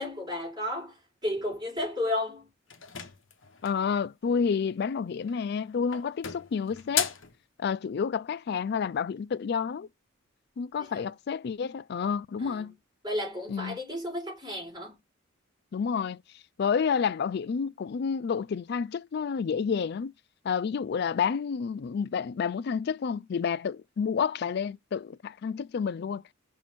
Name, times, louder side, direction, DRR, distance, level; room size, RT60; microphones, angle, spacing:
voice 1, 0.0-2.5 10.8-11.0 12.4-12.7 13.0-15.0, left 1 dB, 20° right, 4.8 m, -33 dB
sound 1, 2.7-3.9 5.2-5.6 5.9-7.4, left 9 dB, 70° left, 1.0 m, -34 dB
voice 2, 3.6-7.1 7.6-9.9 10.6-12.7 13.5-13.8 15.7-16.2 16.6-20.1 20.4-26.2, left 6 dB, 50° left, 0.3 m, -29 dB
6.1 x 3.7 x 4.3 m
head